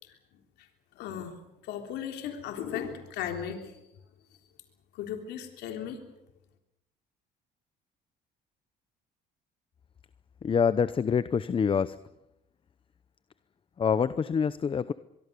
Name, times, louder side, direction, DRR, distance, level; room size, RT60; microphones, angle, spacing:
voice 1, 0.9-1.4 1.6-3.8 4.9-6.0, left 9 dB, 80° left, 4 dB, 3.6 m, -36 dB
voice 2, 10.4-12.0 13.8-14.9, left 6 dB, 30° left, 15 dB, 0.8 m, -26 dB
24.0 x 23.0 x 6.9 m, 0.88 s
cardioid pair, 110°, 17 cm